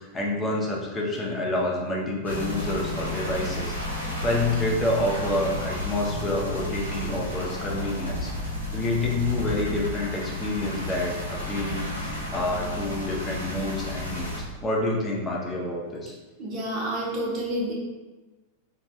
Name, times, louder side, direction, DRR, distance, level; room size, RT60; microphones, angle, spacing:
voice 1, 0.0-16.1, left 2 dB, 15° left, -2 dB, 0.6 m, -28 dB
sound 1, 2.2-14.4, left 1 dB, 90° right, 0.7 m, -32 dB
voice 2, 16.4-17.7, right 1 dB, 30° right, -4 dB, 0.7 m, -29 dB
3.1 x 2.3 x 2.7 m, 1.2 s
figure-of-eight pair, 90°, 0 cm